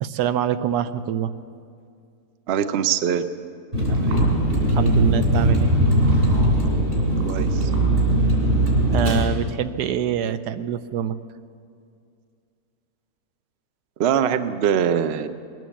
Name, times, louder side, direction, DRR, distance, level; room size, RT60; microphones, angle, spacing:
voice 1, 0.0-1.3 4.7-5.7 8.9-11.2, right 9 dB, 80° right, 12 dB, 1.2 m, -25 dB
voice 2, 2.5-3.3 3.9-4.2 7.3-7.7 14.0-15.3, right 8 dB, 65° right, 11 dB, 0.6 m, -23 dB
Vehicle, 3.7-9.2, right 1 dB, 40° right, 4.0 m, -19 dB
19.5 x 9.3 x 7.2 m, 2.3 s
omnidirectional pair, 1.7 m